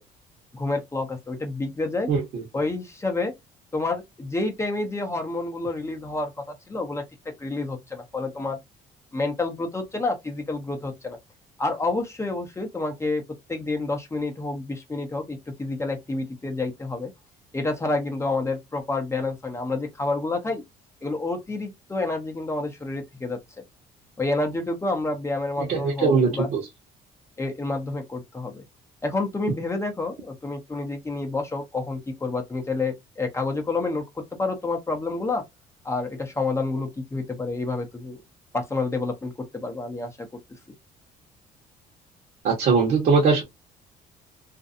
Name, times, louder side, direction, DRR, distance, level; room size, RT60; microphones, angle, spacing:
voice 1, 0.5-2.1 2.5-3.3 3.7-6.3 6.7-7.0 7.4-8.6 9.1-11.2 11.6-13.2 13.5-17.1 17.5-20.6 21.0-23.4 24.2-26.5 27.4-28.6 29.0-34.0 34.4-35.4 35.8-38.2 38.5-40.3, left 3 dB, 15° left, 0.6 m, -28 dB
voice 2, 25.6-26.6 42.4-43.4, right 5 dB, 60° right, 1.0 m, -20 dB
2.5 x 2.3 x 2.5 m
cardioid pair, 110°, 17 cm